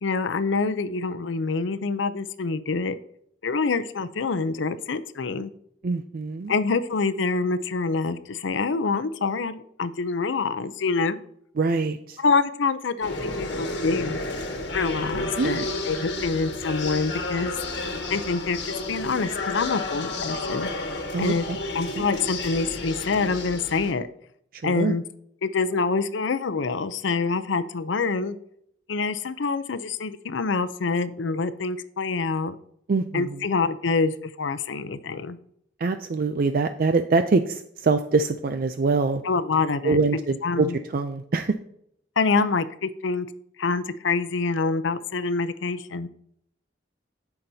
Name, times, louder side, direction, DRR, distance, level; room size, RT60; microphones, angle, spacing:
voice 1, 0.0-3.0 3.4-5.5 6.5-11.3 12.2-14.2 14.7-17.5 18.1-20.7 21.2-21.5 21.7-24.1 24.6-25.0 25.4-28.3 28.9-32.6 33.1-35.4 39.2-40.0 40.4-40.8 42.2-43.3 43.6-46.1, left 4 dB, 85° left, 12 dB, 0.6 m, -26 dB
voice 2, 5.8-6.5 11.6-12.2 15.4-15.7 21.1-21.6 22.0-22.1 24.5-24.9 32.9-33.4 35.8-39.2 39.8-41.5, right 4 dB, 50° right, 8 dB, 0.4 m, -24 dB
sound 1, 13.0-23.9, left 2 dB, 65° left, 1.4 m, -31 dB
16.5 x 5.9 x 2.8 m, 0.71 s
head